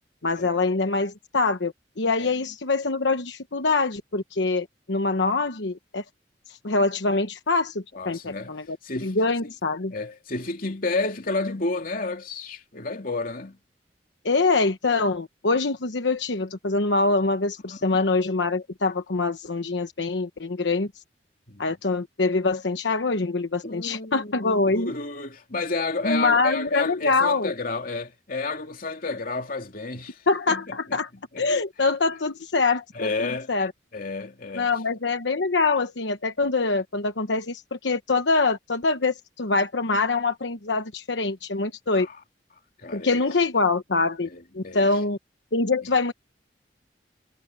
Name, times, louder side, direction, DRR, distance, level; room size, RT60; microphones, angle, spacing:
voice 1, 0.2-6.0 6.5-8.8 9.0-9.9 14.2-20.9 21.6-24.9 26.0-27.5 30.3-31.1 31.4-33.7 34.5-42.1 42.9-44.3 44.5-45.2 45.5-46.1, left 3 dB, 85° left, 1.1 m, -24 dB
voice 2, 7.9-8.5 8.8-9.1 9.9-13.6 17.8-18.0 21.5-21.7 23.6-30.2 30.5-30.7 31.3-31.5 32.9-33.5 33.9-34.7 41.9-42.1 42.8-43.2 44.3-44.9, left 3 dB, 50° left, 2.8 m, -31 dB
head